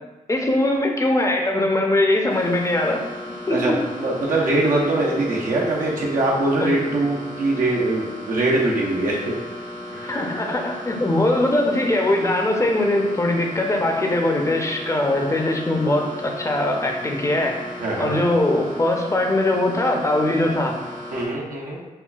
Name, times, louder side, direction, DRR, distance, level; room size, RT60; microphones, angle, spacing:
voice 1, 0.3-3.1 3.5-3.8 6.6-6.7 10.0-17.6 18.0-20.8, left 1 dB, 20° left, 2 dB, 0.6 m, -21 dB
sound 1, 2.3-21.3, left 1 dB, 80° left, 1.0 m, -36 dB
voice 2, 3.5-9.3 9.9-10.2 17.8-18.2 21.1-21.8, right 2 dB, 70° right, -4 dB, 0.9 m, -22 dB
5.5 x 2.2 x 2.4 m, 1.1 s
supercardioid pair, 50°, 14 cm